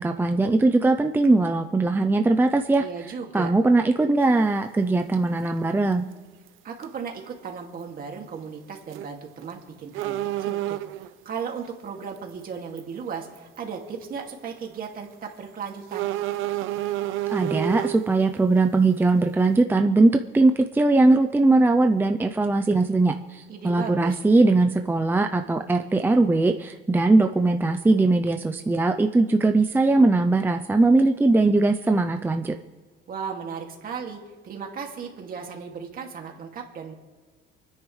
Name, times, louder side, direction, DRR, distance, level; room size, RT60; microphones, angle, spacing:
voice 1, 0.0-2.8 3.3-6.1 17.3-32.6, right 2 dB, 10° right, 5 dB, 0.5 m, -20 dB
voice 2, 2.8-3.5 6.6-10.8 11.3-16.1 23.5-24.1 33.1-36.9, right 6 dB, 45° right, 1 dB, 2.3 m, -36 dB
sound 1, 4.2-4.3 5.9-6.1 6.5-6.6 6.8-6.9 8.8-9.1 9.4-9.5 9.9-11.1 12.2-12.3 12.8-12.9 13.4-13.6 14.0-14.1 15.9-18.1, right 14 dB, 75° right, 0.8 m, -29 dB
28.0 x 9.9 x 3.3 m, 1.4 s
cardioid pair, 130°, 20 cm